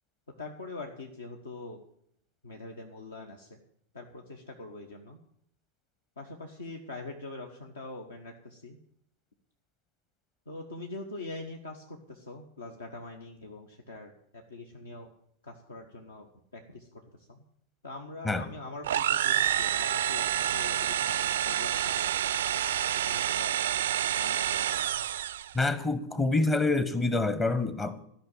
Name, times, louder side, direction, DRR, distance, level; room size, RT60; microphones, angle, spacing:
voice 1, 0.4-1.8 2.4-3.6 3.9-5.2 6.2-8.8 10.5-15.1 15.4-17.0 17.3-17.4 17.8-22.3 22.8-23.6 24.2-24.7, left 2 dB, 70° left, 3 dB, 1.2 m, -43 dB
sound 1, 18.8-25.5, right 11 dB, 60° right, 0.4 m, -28 dB
voice 2, 25.5-28.1, left 3 dB, 20° left, 13 dB, 0.9 m, -27 dB
13.5 x 5.7 x 9.0 m, 0.71 s
figure-of-eight pair, 90°, 0 cm